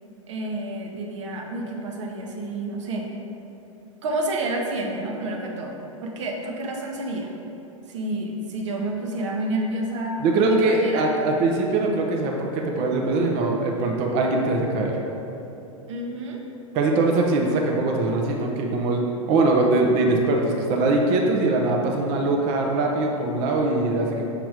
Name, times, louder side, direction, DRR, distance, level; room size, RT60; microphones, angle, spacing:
voice 1, 0.3-3.1 4.0-7.3 7.9-11.1 15.9-16.4, right 1 dB, 60° right, 0 dB, 0.9 m, -29 dB
voice 2, 10.2-15.0 16.7-19.0 19.3-24.3, right 2 dB, 35° right, 0 dB, 0.7 m, -22 dB
6.6 x 3.0 x 4.8 m, 2.9 s
figure-of-eight pair, 100°, 18 cm